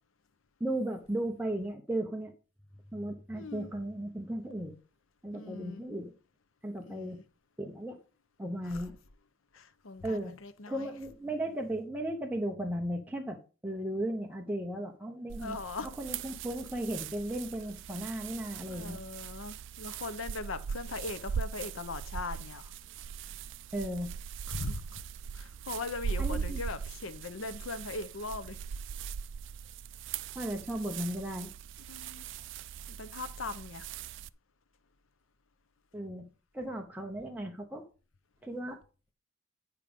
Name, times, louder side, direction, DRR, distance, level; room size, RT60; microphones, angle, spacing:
voice 1, 0.6-2.3 2.9-4.7 5.2-6.1 6.6-7.2 7.6-8.0 8.4-8.9 10.0-10.4 10.7-15.6 16.0-19.0 23.7-24.1 26.2-26.6 30.3-31.5 35.9-36.3 36.5-37.9 38.4-38.8, right 1 dB, 10° right, 0.8 m, -35 dB
voice 2, 3.3-3.7 5.3-5.8 6.8-7.2 8.6-8.8 9.5-11.0 15.4-15.9 18.7-22.7 24.5-25.0 25.3-28.6 31.9-32.3 32.9-33.9, left 3 dB, 75° left, 0.7 m, -40 dB
sound 1, 15.3-34.3, right 7 dB, 60° right, 0.3 m, -40 dB
9.1 x 4.9 x 5.1 m
head